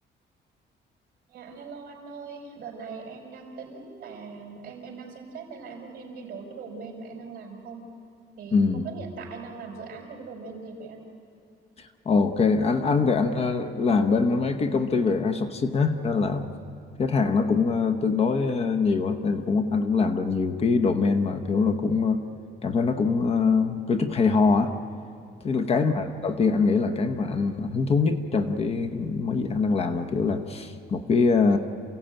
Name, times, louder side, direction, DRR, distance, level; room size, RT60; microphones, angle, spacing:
voice 1, 1.3-7.9 8.4-11.1 25.4-25.7, right 4 dB, 50° right, 1 dB, 4.7 m, -41 dB
voice 2, 8.5-8.9 11.8-16.5 17.0-22.2 22.6-24.7 25.4-31.6, left 4 dB, 35° left, 6 dB, 0.9 m, -23 dB
28.0 x 16.5 x 8.9 m, 2.6 s
cardioid pair, 180°, 19 cm